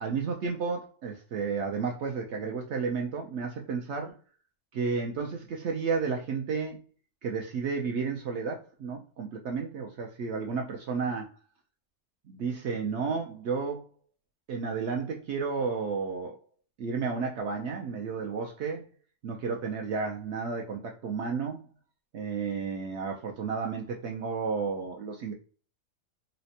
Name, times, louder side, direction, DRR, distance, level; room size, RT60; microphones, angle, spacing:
voice 1, 0.0-4.1 4.7-6.8 7.2-11.3 12.3-13.9 14.5-16.4 16.8-18.9 19.2-21.6 22.1-25.3, right 5 dB, 65° right, 1 dB, 0.7 m, -32 dB
4.0 x 2.1 x 2.7 m, 0.39 s
omnidirectional pair, 1.6 m